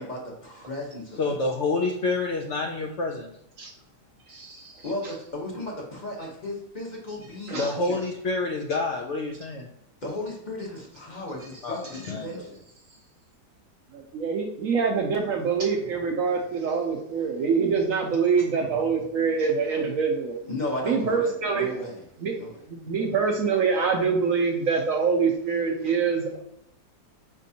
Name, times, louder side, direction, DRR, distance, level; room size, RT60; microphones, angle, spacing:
voice 1, 0.0-1.4 4.8-8.1 10.0-12.6 15.9-16.0 18.6-18.7 20.4-22.0 22.3-22.6, left 1 dB, 35° left, -2 dB, 0.8 m, -35 dB
voice 2, 1.2-3.3 7.6-9.7 11.6-12.4, left 3 dB, 90° left, 1 dB, 0.6 m, -28 dB
voice 3, 4.3-4.9 7.5-7.7 13.9-20.4 20.8-21.7 22.2-22.3 22.7-26.4, right 5 dB, 70° right, 2 dB, 0.8 m, -25 dB
5.2 x 3.5 x 2.7 m, 0.77 s
omnidirectional pair, 1.8 m